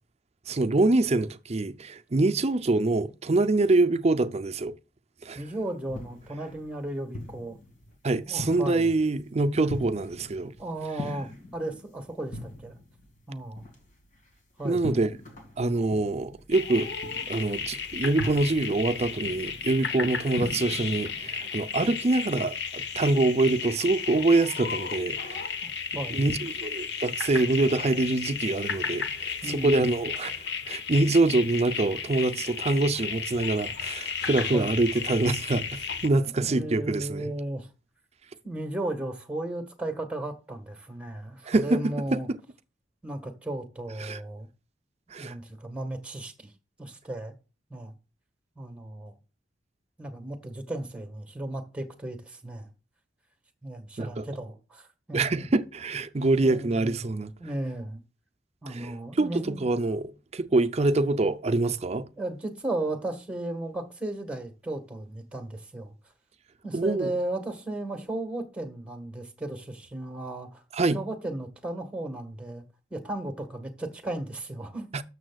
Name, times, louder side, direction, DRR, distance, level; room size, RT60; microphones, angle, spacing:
voice 1, 0.5-4.7 5.2-5.4 8.0-10.5 14.6-15.2 15.6-17.0 17.3-25.5 26.1-37.3 41.5-41.8 42.1-42.4 44.0-44.2 45.1-45.3 54.0-54.2 55.1-57.3 58.7-58.9 59.2-62.1 66.7-67.1 70.7-71.0 74.9-75.0, right 2 dB, 35° right, 0.6 m, -25 dB
voice 2, 5.3-7.6 8.3-8.9 9.6-9.7 10.6-12.7 13.3-13.7 14.6-14.8 25.6-26.2 29.4-29.9 34.5-34.8 36.3-37.7 38.4-42.3 43.0-44.5 45.2-46.5 46.8-47.3 47.7-47.9 48.6-49.2 50.0-52.7 53.6-55.5 56.4-57.1 57.4-58.0 58.6-59.6 62.2-65.9 66.6-70.6 70.9-72.6 72.9-74.9, right 1 dB, 5° right, 1.5 m, -35 dB
sound 1, 5.4-21.3, left 1 dB, 45° left, 2.3 m, -42 dB
sound 2, 16.5-36.1, left 6 dB, 65° left, 1.0 m, -34 dB
12.5 x 6.9 x 2.4 m
head